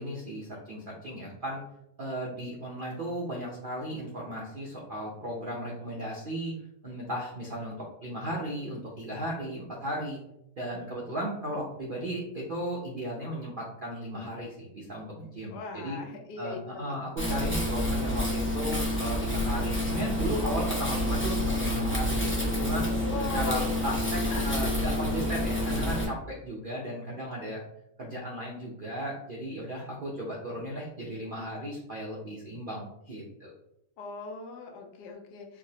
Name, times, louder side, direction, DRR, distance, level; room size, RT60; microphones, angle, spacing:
voice 1, 0.0-1.6 2.0-6.5 6.8-10.2 10.6-16.0 16.4-22.2 22.6-22.9 23.3-27.6 28.0-33.5, equal, 60° right, -4 dB, 0.5 m, -35 dB
voice 2, 15.5-17.0 23.0-23.7 24.3-24.8 34.0-35.6, left 5 dB, 90° left, 3 dB, 1.2 m, -39 dB
Wind, 17.2-26.0, left 1 dB, 20° left, 0.3 m, -28 dB
4.7 x 2.0 x 2.7 m, 0.79 s
omnidirectional pair, 1.7 m